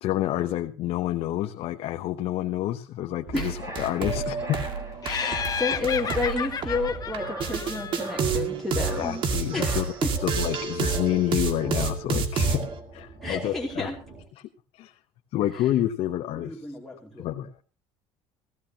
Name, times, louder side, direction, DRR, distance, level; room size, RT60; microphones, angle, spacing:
voice 1, 0.0-4.6 9.0-9.9 10.2-12.6 12.9-13.9 14.8-14.9 15.3-16.6 17.2-17.5, left 13 dB, 65° left, 6 dB, 0.9 m, -28 dB
sound 1, 3.3-14.2, right 2 dB, 30° right, 4.2 m, -40 dB
sound 2, 3.3-12.8, right 5 dB, 50° right, 2.3 m, -29 dB
Laughter, 5.0-8.4, left 7 dB, 35° left, 1.1 m, -32 dB
voice 2, 5.1-9.2 9.5-10.1 13.2-14.0 15.5-15.6 16.4-17.3, left 3 dB, ahead, -4 dB, 2.8 m, -31 dB
16.5 x 16.0 x 2.9 m, 0.35 s
cardioid pair, 110°, 11 cm